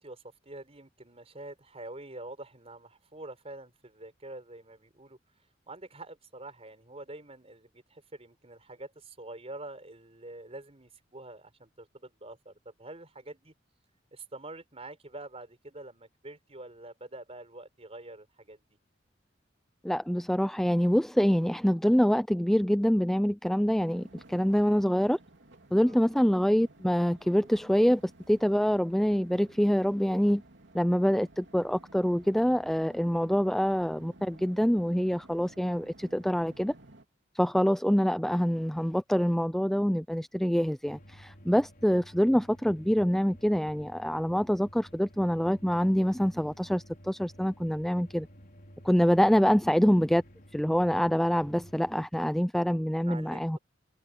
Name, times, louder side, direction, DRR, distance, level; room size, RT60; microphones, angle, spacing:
voice 1, 0.0-5.2 5.7-13.5 14.1-18.6 25.8-26.0 53.0-53.6, right 2 dB, 35° right, 5.1 m, -46 dB
voice 2, 19.8-25.2 25.7-28.0 28.3-30.4 30.7-36.7 37.3-48.3 48.8-50.2 50.5-53.6, equal, ahead, 0.4 m, -25 dB
sound 1, 23.8-37.1, right 1 dB, 70° right, 3.3 m, -55 dB
sound 2, 40.9-52.1, equal, 50° left, 4.8 m, -53 dB
head